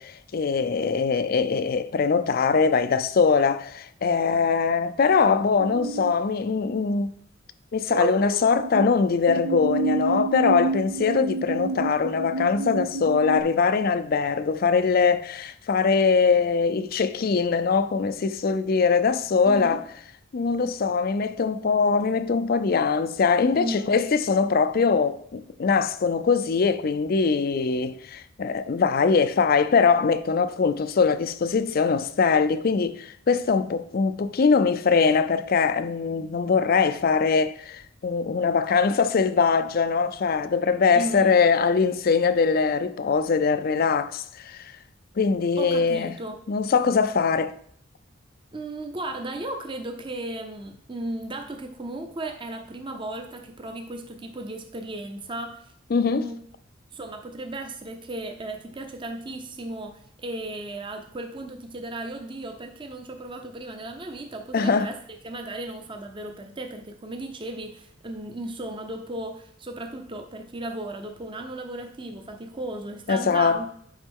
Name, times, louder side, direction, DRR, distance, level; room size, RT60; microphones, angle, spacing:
voice 1, 0.0-7.1 7.7-19.8 20.3-44.7 45.2-46.1 46.5-47.5 55.9-56.3 64.5-64.9 73.1-73.7, left 5 dB, 45° left, 0.4 m, -22 dB
sound 1, 5.6-6.1 7.9-8.9 9.3-13.4, right 3 dB, 90° right, 0.5 m, -29 dB
voice 2, 19.5-19.9 23.5-24.0 40.9-41.3 45.6-46.4 48.5-55.7 56.1-56.4 56.9-65.0 65.2-73.7, right 1 dB, 25° right, 0.6 m, -35 dB
8.1 x 5.2 x 3.7 m
head